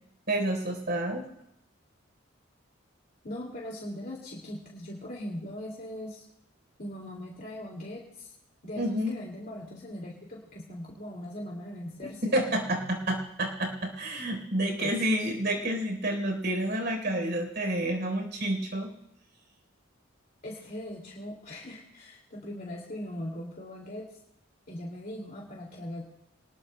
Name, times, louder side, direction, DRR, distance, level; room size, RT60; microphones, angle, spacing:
voice 1, 0.3-1.2 8.8-9.1 12.2-18.9, right 1 dB, 55° right, 3 dB, 3.8 m, -29 dB
voice 2, 3.2-6.3 6.8-8.3 8.6-12.4 14.8-15.3 20.4-24.1 24.7-26.0, left 1 dB, 45° left, -3 dB, 2.5 m, -40 dB
26.0 x 20.0 x 2.2 m, 0.83 s
head